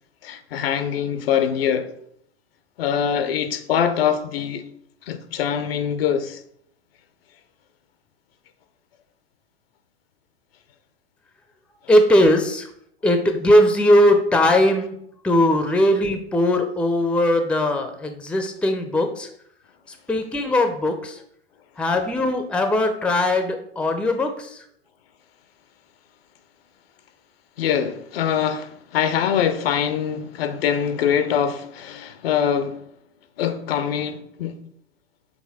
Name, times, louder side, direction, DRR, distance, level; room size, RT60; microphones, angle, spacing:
voice 1, 0.2-1.9 2.8-4.7 5.1-6.4 27.6-32.8 33.4-34.6, left 8 dB, 65° left, 0.7 m, -23 dB
voice 2, 11.9-12.7 13.0-14.9 15.2-19.3 20.1-21.2 21.8-24.6, left 1 dB, 5° left, 0.6 m, -19 dB
6.4 x 3.2 x 4.8 m
figure-of-eight pair, 90°, 33 cm